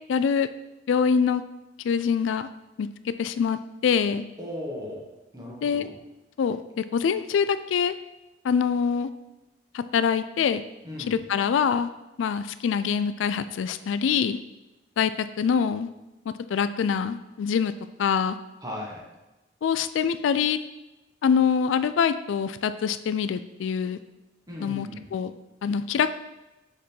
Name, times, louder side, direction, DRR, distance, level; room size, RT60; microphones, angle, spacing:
voice 1, 0.1-0.5 0.9-1.4 1.8-2.5 2.8-4.2 5.6-5.9 6.4-7.9 8.4-9.1 9.7-10.6 11.1-11.9 12.2-14.4 15.0-15.9 16.3-17.7 18.0-18.4 19.6-20.6 21.2-24.0 24.6-25.3 25.6-26.2, left 6 dB, 90° left, 12 dB, 0.3 m, -24 dB
voice 2, 4.4-5.1 5.3-5.9 10.8-11.2 18.6-19.0 24.5-25.1, left 1 dB, 20° right, -3 dB, 1.4 m, -36 dB
5.3 x 5.1 x 4.4 m, 1.0 s
head